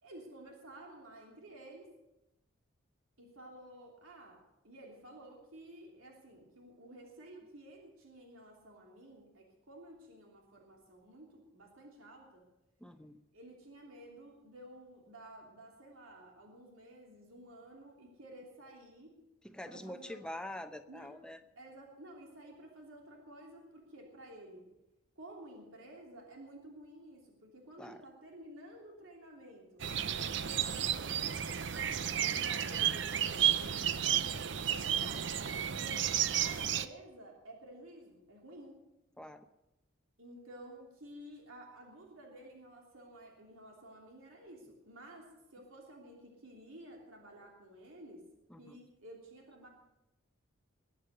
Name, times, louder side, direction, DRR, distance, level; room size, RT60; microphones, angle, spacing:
voice 1, 0.0-1.9 3.2-12.4 13.3-19.2 19.7-20.2 20.9-21.1 21.6-24.7 25.1-29.8 30.2-34.1 34.7-35.3 35.8-38.8 40.2-48.2 48.6-49.7, right 1 dB, 90° right, 0 dB, 3.1 m, -53 dB
voice 2, 12.8-13.2 19.4-21.4 27.8-28.0 39.2-39.5 48.5-48.8, left 1 dB, 5° left, 8 dB, 0.7 m, -45 dB
sound 1, 29.8-36.9, right 9 dB, 60° right, 0.6 m, -32 dB
21.5 x 8.3 x 6.8 m, 0.93 s
head